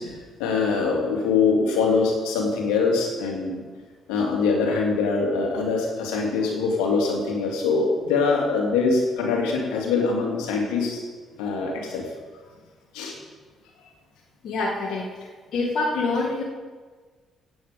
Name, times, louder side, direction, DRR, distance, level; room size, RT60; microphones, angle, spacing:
voice 1, 0.0-3.6 4.1-11.0 11.4-12.0 12.9-13.1, left 4 dB, 90° left, 0 dB, 2.4 m, -23 dB
voice 2, 14.4-15.1 15.5-16.4, left 3 dB, 70° left, -2 dB, 1.9 m, -25 dB
16.5 x 8.4 x 5.1 m, 1.4 s
supercardioid pair, 60°, 0 cm